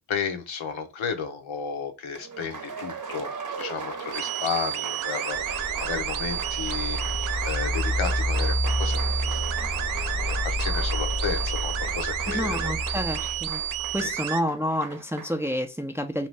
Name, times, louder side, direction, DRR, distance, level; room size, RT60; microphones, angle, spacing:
voice 1, 0.0-3.3 3.6-12.7 13.2-13.3, left 6 dB, 75° left, 0.9 m, -33 dB
Applause, 2.1-15.4, right 5 dB, 40° right, 0.8 m, -38 dB
sound 1, 4.1-14.4, right 11 dB, 75° right, 0.6 m, -31 dB
sound 2, 5.3-14.1, left 1 dB, 25° left, 0.8 m, -30 dB
voice 2, 12.3-13.6 13.9-16.3, equal, 5° right, 0.5 m, -29 dB
2.7 x 2.6 x 3.2 m
supercardioid pair, 45°, 48 cm